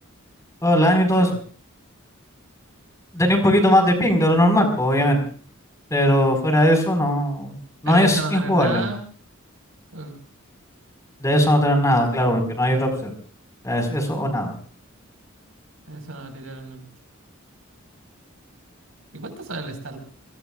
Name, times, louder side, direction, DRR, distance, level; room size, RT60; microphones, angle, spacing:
voice 1, 0.6-1.3 3.1-5.2 5.9-7.6 7.8-8.8 11.2-13.1 13.6-14.5, equal, 15° left, 4 dB, 4.8 m, -19 dB
voice 2, 7.8-9.0 9.9-10.1 15.9-16.8 19.1-20.0, right 2 dB, 80° right, 5 dB, 4.8 m, -31 dB
26.0 x 22.5 x 2.4 m, 0.43 s
head